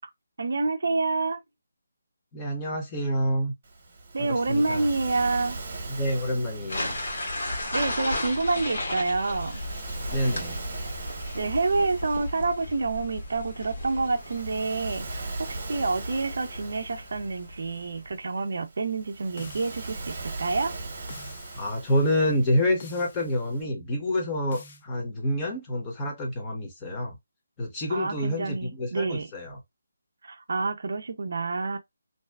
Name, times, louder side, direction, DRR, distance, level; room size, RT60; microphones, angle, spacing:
voice 1, 0.4-1.4 4.1-5.6 7.7-9.6 11.3-20.7 27.9-29.3 30.2-31.8, right 3 dB, 60° right, 0.4 m, -28 dB
voice 2, 2.3-3.5 4.2-4.9 5.9-7.0 10.1-10.6 21.5-27.2 27.6-29.6, left 1 dB, 15° left, 0.8 m, -28 dB
Waves surf, 3.6-23.6, right 3 dB, 35° right, 0.9 m, -40 dB
sound 1, 6.7-18.1, left 1 dB, 60° left, 1.1 m, -35 dB
sound 2, 19.4-20.2 21.1-21.8 22.8-23.4 24.5-24.8, left 4 dB, 35° left, 0.4 m, -46 dB
2.6 x 2.2 x 2.2 m
figure-of-eight pair, 165°, 0 cm